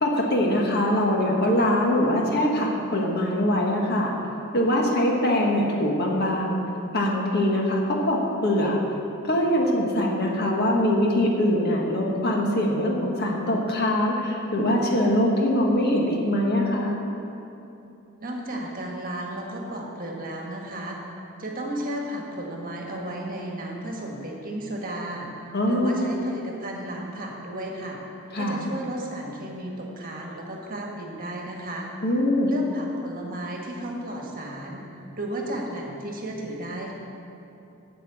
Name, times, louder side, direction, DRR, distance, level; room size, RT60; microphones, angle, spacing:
voice 1, 0.0-4.1 4.5-6.6 6.9-8.8 9.3-16.9 25.5-26.1 28.3-28.6 32.0-32.5, left 1 dB, 50° left, 0 dB, 1.5 m, -23 dB
voice 2, 18.2-21.0 21.4-28.0 28.4-31.9 32.5-34.8 35.2-36.9, right 1 dB, 40° right, -1 dB, 1.5 m, -34 dB
8.3 x 6.9 x 8.4 m, 2.9 s
head